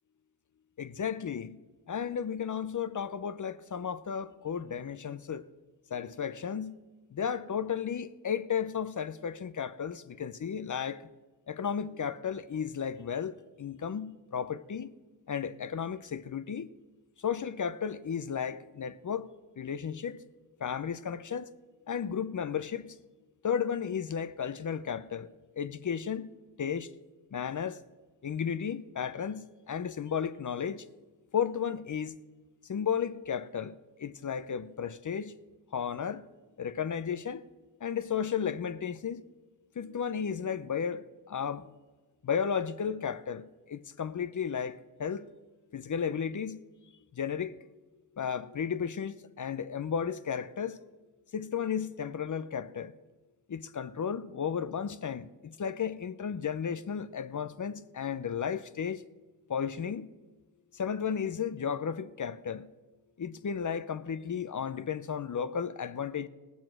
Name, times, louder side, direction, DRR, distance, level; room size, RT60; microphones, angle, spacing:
voice 1, 0.8-1.6 1.9-5.4 5.9-6.8 7.1-11.0 11.5-14.9 15.3-16.7 17.2-19.3 19.6-20.2 20.6-21.5 21.9-23.0 23.4-25.3 25.6-26.3 26.6-26.9 27.3-27.8 28.2-30.9 31.3-32.2 32.7-35.3 35.7-36.2 36.6-37.4 37.8-39.2 39.8-41.7 42.2-45.3 45.7-46.6 47.1-47.6 48.2-50.8 51.3-52.9 53.5-59.0 59.5-60.1 60.7-62.7 63.2-66.3, left 7 dB, 45° left, 0.6 m, -34 dB
17.0 x 7.3 x 6.1 m
cardioid pair, 60°, 42 cm